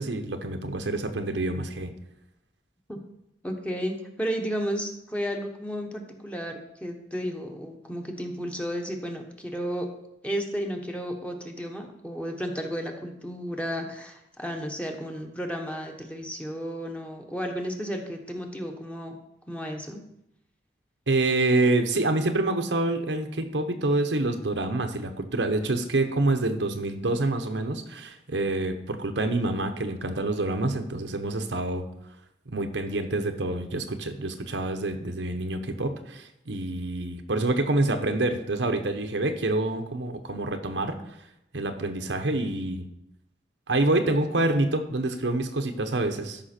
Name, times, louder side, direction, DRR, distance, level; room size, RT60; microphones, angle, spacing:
voice 1, 0.0-1.9 21.1-31.8 32.5-41.0 41.5-42.8 43.7-46.4, right 2 dB, 90° right, 6 dB, 1.0 m, -27 dB
voice 2, 3.4-9.9 10.2-19.2 19.5-20.0, equal, 5° left, 2 dB, 1.0 m, -33 dB
13.0 x 5.6 x 4.4 m, 0.82 s
head